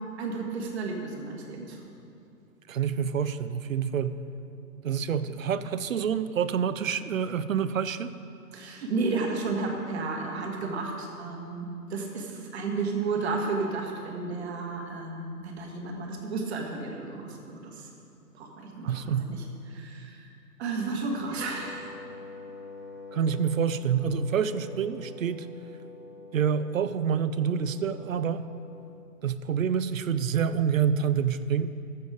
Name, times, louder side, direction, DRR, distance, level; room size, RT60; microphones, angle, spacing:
voice 1, 0.0-1.8 8.5-17.9 18.3-20.3 20.6-21.9, right 3 dB, 45° right, 1 dB, 1.8 m, -33 dB
voice 2, 2.7-4.2 4.8-8.2 18.8-19.3 23.1-25.5 26.3-28.4 29.2-31.7, right 7 dB, 60° right, 14 dB, 0.5 m, -27 dB
Wind instrument woodwind instrument, 21.4-29.0, left 2 dB, 10° right, 1.6 m, -45 dB
14.0 x 6.3 x 5.0 m, 2.6 s
hypercardioid pair, 145°, 46 cm